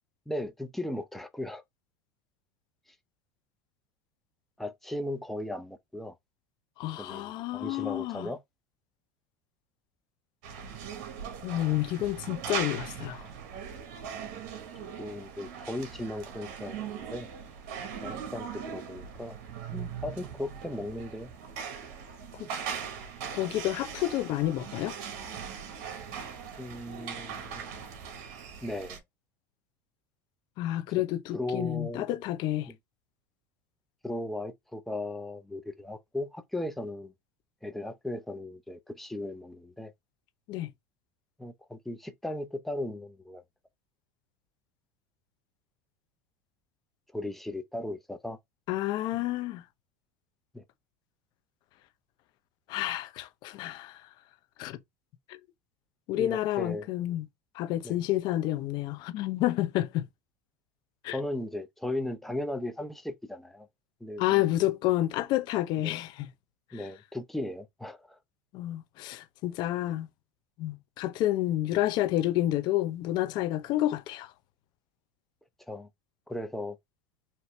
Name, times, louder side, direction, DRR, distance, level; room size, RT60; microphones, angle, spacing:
voice 1, 0.3-1.6 4.6-6.1 7.0-8.4 15.0-17.3 18.0-19.4 19.7-21.3 26.6-27.8 28.6-29.0 31.3-32.0 32.7-32.8 34.0-37.1 37.6-39.9 41.4-43.4 47.1-48.4 50.5-50.6 56.2-56.9 57.8-58.0 61.1-63.7 64.0-64.5 65.8-65.9 66.7-68.2 75.7-75.9 76.3-76.8, left 1 dB, ahead, 0.7 m, -37 dB
voice 2, 6.8-8.3 11.4-13.3 22.4-22.5 23.3-25.0 30.6-32.7 40.5-40.7 48.7-49.6 52.7-54.0 54.6-54.8 56.1-57.3 57.5-60.1 61.0-61.2 64.2-66.3 66.7-66.8 68.5-70.1 70.6-74.3, left 14 dB, 55° left, 0.8 m, -29 dB
sound 1, 10.4-29.0, right 7 dB, 65° right, 1.3 m, -40 dB
4.4 x 2.8 x 3.2 m
supercardioid pair, 100°, 9 cm